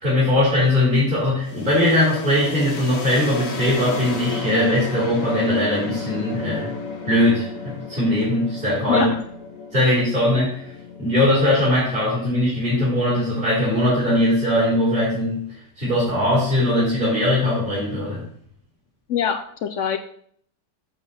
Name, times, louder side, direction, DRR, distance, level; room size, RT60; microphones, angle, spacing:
voice 1, 0.0-6.7 7.0-9.2 9.7-10.7 11.0-18.2, left 1 dB, 30° right, -8 dB, 3.3 m, -20 dB
sound 1, 1.4-13.1, left 4 dB, 55° left, 1.5 m, -33 dB
voice 2, 8.9-9.2 19.1-20.0, left 8 dB, 75° left, 8 dB, 0.7 m, -24 dB
7.5 x 7.1 x 4.1 m, 0.64 s
omnidirectional pair, 1.8 m